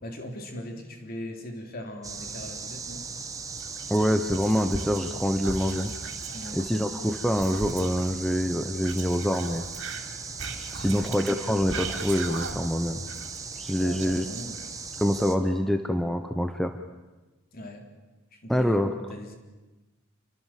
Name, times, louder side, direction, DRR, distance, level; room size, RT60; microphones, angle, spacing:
voice 1, 0.0-3.1 6.3-6.6 10.8-11.2 13.8-14.6 17.5-17.9 18.3-18.8 19.1-19.3, left 1 dB, 45° left, 4 dB, 3.7 m, -40 dB
sound 1, 2.0-15.4, right 4 dB, 15° right, 1.5 m, -38 dB
Whispering, 3.5-5.1 5.4-8.1 8.8-12.8 13.1-14.9, right 4 dB, 60° right, 3.5 m, -39 dB
voice 2, 3.9-5.9 6.5-9.6 10.7-13.0 13.6-14.2 15.0-16.7 18.5-18.9, equal, ahead, 6 dB, 1.1 m, -25 dB
27.5 x 24.0 x 7.6 m, 1.1 s
head